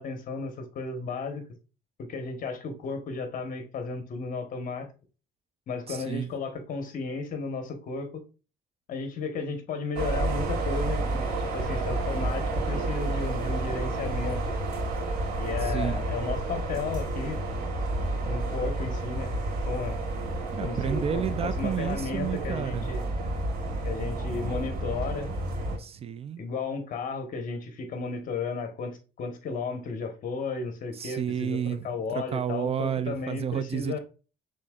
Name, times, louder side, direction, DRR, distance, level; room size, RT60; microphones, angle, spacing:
voice 1, 0.0-1.4 2.0-4.9 5.7-8.2 8.9-14.6 15.4-17.4 18.2-19.3 19.6-20.0 20.6-23.0 23.8-25.3 26.4-34.0, left 4 dB, 55° left, 1.2 m, -34 dB
voice 2, 5.9-6.3 15.6-16.1 20.5-22.9 25.8-26.4 30.9-34.0, right 8 dB, 35° right, 0.4 m, -31 dB
sound 1, 9.9-25.8, right 2 dB, 75° right, 2.4 m, -30 dB
5.8 x 3.7 x 2.4 m
cardioid pair, 110°, 17 cm